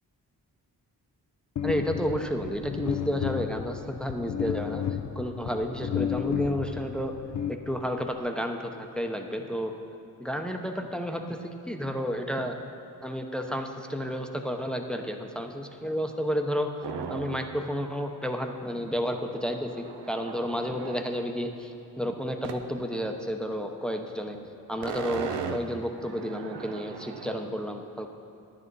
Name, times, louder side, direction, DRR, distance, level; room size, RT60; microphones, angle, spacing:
sound 1, 1.6-8.2, left 9 dB, 45° left, 0.5 m, -33 dB
voice 1, 1.6-4.8 5.2-7.1 7.5-9.7 10.2-12.6 13.0-16.7 17.1-24.4 24.7-28.1, equal, ahead, 4 dB, 0.7 m, -31 dB
sound 2, 16.8-17.6 18.0-18.1 18.3-21.0 22.4-22.7 23.0-23.1 24.2-24.4 24.7-27.4, right 6 dB, 80° right, 0.6 m, -38 dB
10.0 x 6.3 x 5.4 m, 2.7 s
cardioid pair, 50°, 40 cm